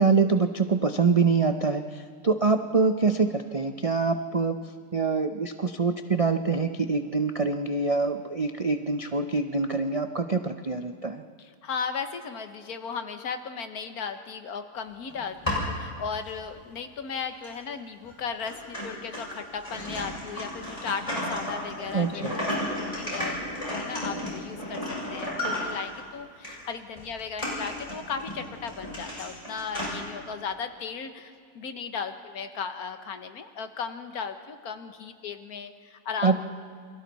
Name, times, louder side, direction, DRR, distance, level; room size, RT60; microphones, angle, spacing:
voice 1, 0.0-4.6 4.9-11.2 21.9-22.3 36.2-36.4, right 4 dB, 65° right, 7 dB, 0.3 m, -25 dB
voice 2, 11.4-22.5 23.0-23.4 23.7-24.8 25.1-36.4, left 6 dB, 65° left, 8 dB, 1.6 m, -36 dB
sound 1, 15.1-15.8 16.4-16.5 17.4-17.6 18.0-18.1 18.5-26.0 26.4-26.6 27.0-29.9, left 1 dB, 20° left, 6.3 m, -33 dB
28.5 x 22.5 x 4.2 m, 2.2 s
omnidirectional pair, 1.8 m